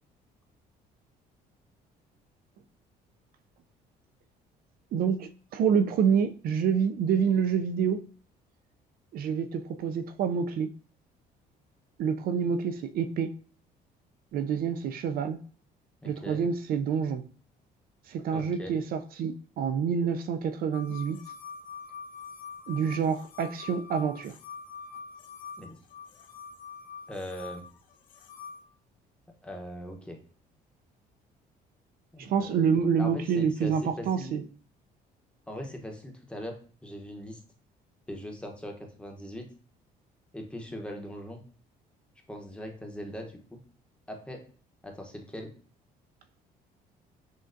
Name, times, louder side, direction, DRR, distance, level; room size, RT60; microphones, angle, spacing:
voice 1, 4.9-8.1 9.1-10.7 12.0-13.3 14.3-15.4 16.0-17.2 18.1-21.2 22.7-24.4 32.2-34.4, right 7 dB, 60° right, 0.4 m, -27 dB
voice 2, 16.0-16.4 18.3-18.7 25.6-25.8 27.1-27.6 29.4-30.2 32.1-32.6 33.0-34.5 35.5-37.4 38.1-39.5 40.3-41.4 42.3-43.6 44.1-44.4 44.8-45.5, equal, 5° left, 0.9 m, -40 dB
sound 1, 20.7-28.6, left 6 dB, 55° left, 0.7 m, -44 dB
6.2 x 2.3 x 2.6 m
cardioid pair, 110°, 17 cm